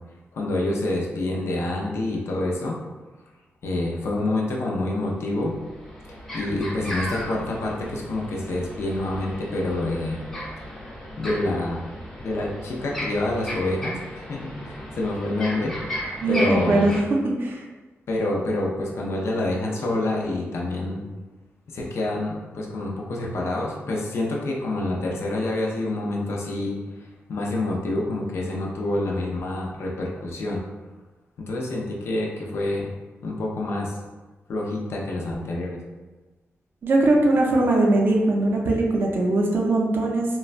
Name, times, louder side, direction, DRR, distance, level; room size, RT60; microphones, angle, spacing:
voice 1, 0.3-2.8 3.6-5.6 6.3-10.3 11.2-11.8 12.2-15.8 16.0-16.9 18.1-21.1 21.7-30.6 31.4-32.9 33.2-34.0 34.5-35.8, left 2 dB, 70° left, -2 dB, 0.5 m, -27 dB
sound 1, 4.9-5.0 5.4-17.0, equal, 10° left, 0.7 m, -35 dB
voice 2, 16.2-16.9 17.4-17.6 36.8-40.3, right 2 dB, 50° right, -1 dB, 0.5 m, -20 dB
3.1 x 2.1 x 2.4 m, 1.2 s
wide cardioid pair, 130°, 5 cm